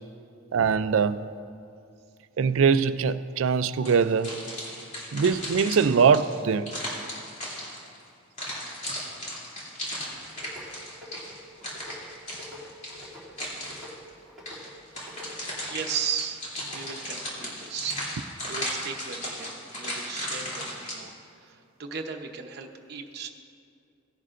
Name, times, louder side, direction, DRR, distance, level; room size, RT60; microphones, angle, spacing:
voice 1, 0.5-1.2 2.4-4.3 5.1-6.7, right 6 dB, 85° right, 13 dB, 0.4 m, -22 dB
sound 1, 3.9-8.0 8.4-14.0 14.5-21.0, left 1 dB, 40° left, 2.9 m, -36 dB
voice 2, 8.6-9.0 9.5-9.9 15.7-16.4 16.7-21.1 21.4-23.3, right 7 dB, 55° right, 3 dB, 0.9 m, -36 dB
sound 2, 10.1-15.7, left 1 dB, ahead, 2.7 m, -47 dB
17.5 x 11.0 x 2.5 m, 2.4 s
head